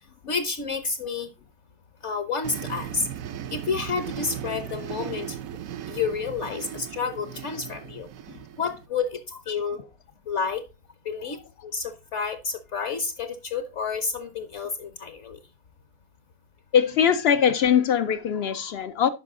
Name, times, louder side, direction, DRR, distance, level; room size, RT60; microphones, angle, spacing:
voice 1, 0.3-1.3 2.0-3.1 3.5-5.4 5.9-8.1 8.6-9.2 9.5-9.8 10.3-10.6 11.1-11.4 11.6-15.4, left 5 dB, 55° left, 1.1 m, -30 dB
sound 1, 2.4-8.9, right 10 dB, 70° right, 1.0 m, -37 dB
voice 2, 16.7-19.1, left 8 dB, 75° left, 0.5 m, -21 dB
11.0 x 4.8 x 3.6 m
omnidirectional pair, 1.6 m